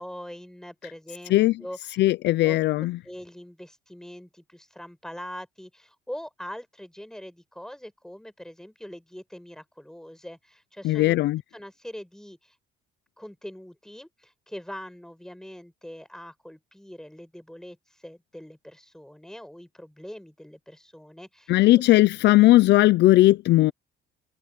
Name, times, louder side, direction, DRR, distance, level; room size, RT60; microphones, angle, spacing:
voice 1, 0.0-2.0 2.4-11.2 11.5-12.5 13.2-17.8 18.0-21.8, equal, 5° left, 7.0 m, -42 dB
voice 2, 2.0-3.0 10.8-11.4 21.5-23.7, left 17 dB, 60° left, 0.5 m, -18 dB
cardioid pair, 105°, 20 cm